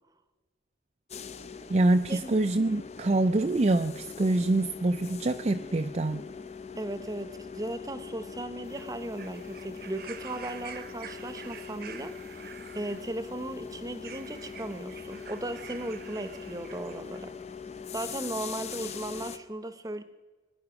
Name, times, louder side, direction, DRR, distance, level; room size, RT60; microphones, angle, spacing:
sound 1, 1.1-19.4, left 6 dB, 35° left, 0.6 m, -42 dB
voice 1, 1.7-6.2, right 2 dB, 35° right, 7 dB, 0.4 m, -25 dB
voice 2, 6.8-17.3 17.9-20.0, right 1 dB, 20° right, 11 dB, 0.8 m, -37 dB
sound 2, 8.6-17.3 18.2-18.3, right 7 dB, 55° right, 1.0 m, -48 dB
22.5 x 10.5 x 6.0 m, 1.4 s
head